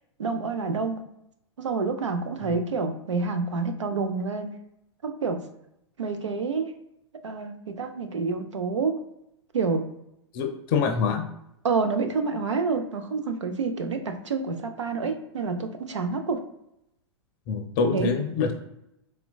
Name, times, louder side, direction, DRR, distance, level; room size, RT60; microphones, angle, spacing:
voice 1, 0.2-1.0 1.6-4.5 5.0-5.4 6.0-6.7 7.2-9.0 9.5-9.9 11.6-16.4 17.9-18.1, right 4 dB, 90° right, 6 dB, 0.5 m, -28 dB
voice 2, 10.3-11.3 17.5-18.5, left 5 dB, 50° left, 6 dB, 0.5 m, -25 dB
4.3 x 2.2 x 2.2 m, 0.82 s
hypercardioid pair, 110°, 15 cm